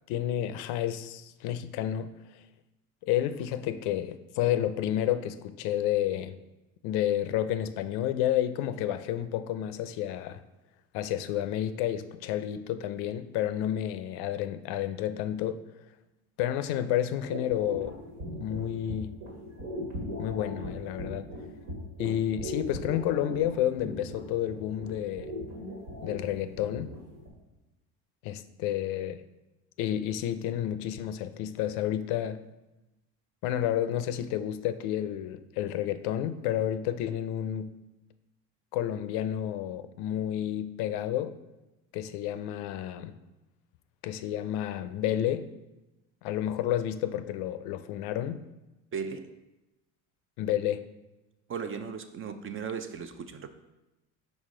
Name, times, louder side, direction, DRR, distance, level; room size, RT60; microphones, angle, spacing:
voice 1, 0.1-2.1 3.0-6.4 6.8-10.4 10.9-15.6 16.4-18.0 18.4-19.1 20.2-21.3 22.0-25.3 26.0-27.0 28.2-29.2 29.8-32.4 33.4-37.7 38.7-41.4 41.9-43.2 44.0-45.5 46.2-48.5 50.4-50.9, left 11 dB, 70° left, 0.5 m, -30 dB
sound 1, 17.3-27.3, left 1 dB, 75° right, 1.9 m, -39 dB
voice 2, 48.9-49.3 51.5-53.5, right 6 dB, 30° right, 0.5 m, -36 dB
5.2 x 4.8 x 3.7 m
supercardioid pair, 85°, 40 cm